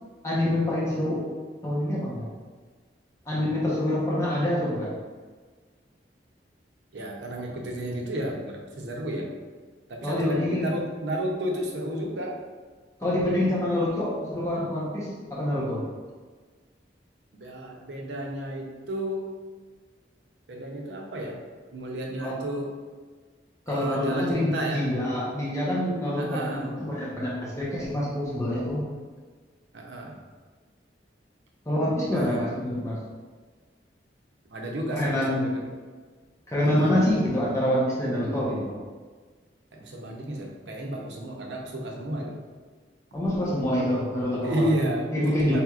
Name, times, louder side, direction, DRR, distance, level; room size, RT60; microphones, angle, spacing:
voice 1, 0.2-1.2 1.6-2.3 3.3-4.9 10.0-10.8 13.0-15.8 22.2-22.4 23.7-28.9 31.7-33.0 34.9-35.5 36.5-38.7 43.1-44.6 45.1-45.6, left 1 dB, 15° left, -7 dB, 0.8 m, -26 dB
voice 2, 6.9-9.3 9.9-12.4 17.3-19.3 20.5-21.4 21.7-22.7 23.7-24.9 26.2-26.8 29.7-30.2 32.1-32.4 34.5-35.6 36.6-37.1 39.7-42.4 44.4-45.1 45.5-45.6, right 1 dB, 85° right, 0 dB, 0.7 m, -32 dB
4.4 x 3.3 x 2.4 m, 1.4 s
head